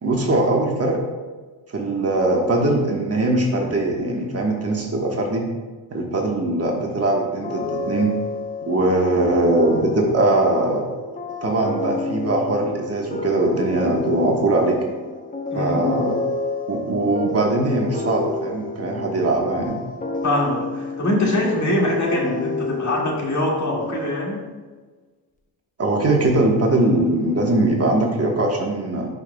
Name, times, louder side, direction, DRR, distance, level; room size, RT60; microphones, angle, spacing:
voice 1, 0.0-1.0 1.7-5.5 5.9-8.1 8.7-10.9 11.4-14.8 15.5-16.2 16.7-19.8 25.8-29.1, right 2 dB, 35° right, 0 dB, 1.4 m, -21 dB
sound 1, 7.4-24.6, left 3 dB, 20° left, 0.9 m, -30 dB
voice 2, 15.5-16.0 20.2-24.4, left 1 dB, 40° left, -2 dB, 2.2 m, -23 dB
11.0 x 5.4 x 2.3 m, 1.4 s
cardioid pair, 80°, 44 cm